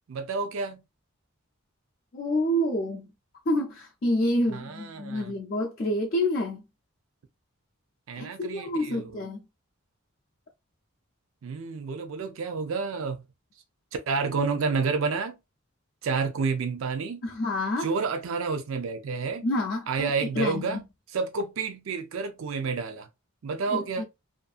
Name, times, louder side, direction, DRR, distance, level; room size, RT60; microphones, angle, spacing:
voice 1, 0.1-0.8 4.5-5.3 8.1-9.2 11.4-13.2 14.1-15.4 16.0-17.2 17.8-19.5 19.9-20.8 21.1-23.1 23.4-24.0, right 4 dB, 80° right, 0.4 m, -30 dB
voice 2, 2.1-3.1 3.5-6.6 8.1-9.4 17.2-17.9 19.4-20.8 23.7-24.0, left 1 dB, 50° left, 0.4 m, -28 dB
2.5 x 2.4 x 2.4 m
head